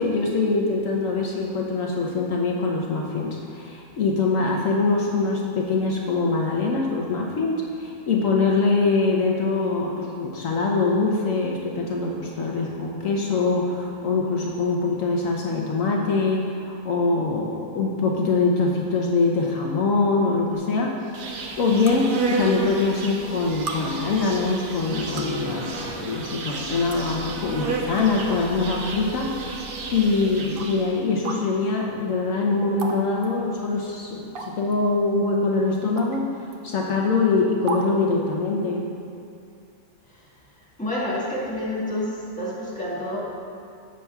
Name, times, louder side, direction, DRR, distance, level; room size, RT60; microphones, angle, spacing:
voice 1, 0.0-21.2 21.6-36.3 36.6-38.9, left 3 dB, 70° left, -1 dB, 1.1 m, -23 dB
sound 1, 20.5-20.6 21.9-22.0 23.0-23.1 23.7-23.8 24.9-25.4 26.4-26.5 26.9-27.0 27.8-28.1 28.6-28.7 29.6-29.7 30.6-30.7 31.2-31.4 32.8-33.0 33.2-33.3 34.3-34.7 36.0-36.2 36.5-36.6 37.7-37.9, right 4 dB, 50° right, 0.7 m, -33 dB
Insect, 21.1-31.0, right 3 dB, 80° right, 1.4 m, -32 dB
voice 2, 40.8-43.4, left 1 dB, 5° left, -7 dB, 1.5 m, -28 dB
15.0 x 6.9 x 2.3 m, 2.5 s
omnidirectional pair, 1.5 m